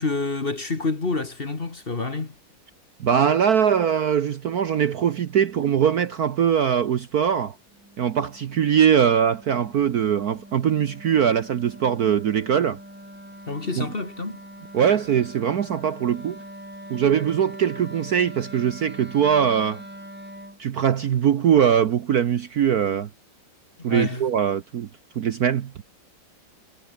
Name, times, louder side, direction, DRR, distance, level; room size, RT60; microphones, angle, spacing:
voice 1, 0.0-2.4 13.5-14.4 23.8-24.3, left 3 dB, 30° left, 1.8 m, -28 dB
voice 2, 3.0-7.5 8.0-12.8 13.8-13.9 14.7-16.4 16.9-19.8 20.6-23.1 23.8-24.9 25.2-25.7, right 8 dB, 55° right, 1.2 m, -21 dB
Wind instrument woodwind instrument, 7.7-20.6, equal, 5° right, 5.2 m, -43 dB
omnidirectional pair, 2.2 m